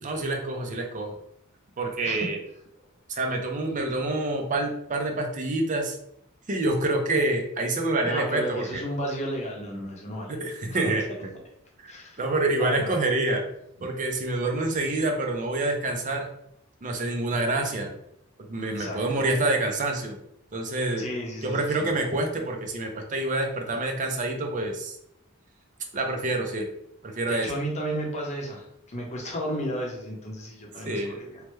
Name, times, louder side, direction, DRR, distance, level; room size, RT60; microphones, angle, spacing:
voice 1, 0.0-1.2 1.8-2.4 3.1-6.0 6.5-8.8 10.3-11.0 11.8-11.9 12.2-13.4 13.8-16.3 16.8-17.9 18.5-20.2 20.5-21.0 21.4-25.0 25.9-26.7 27.0-27.5 30.9-31.2, right 2 dB, 35° right, 3 dB, 0.5 m, -27 dB
voice 2, 8.0-10.3 11.9-12.2 12.6-13.0 18.7-19.0 21.0-21.9 27.3-31.4, equal, 35° left, -1 dB, 0.7 m, -33 dB
3.1 x 2.1 x 3.1 m, 0.76 s
head